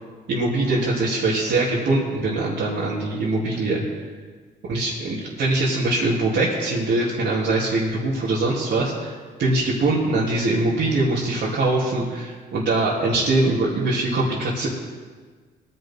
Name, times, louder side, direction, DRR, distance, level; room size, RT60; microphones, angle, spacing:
voice 1, 0.3-3.8 4.7-14.7, right 2 dB, 70° right, -8 dB, 3.1 m, -22 dB
20.5 x 11.0 x 3.8 m, 1.5 s
cardioid pair, 90°, 20 cm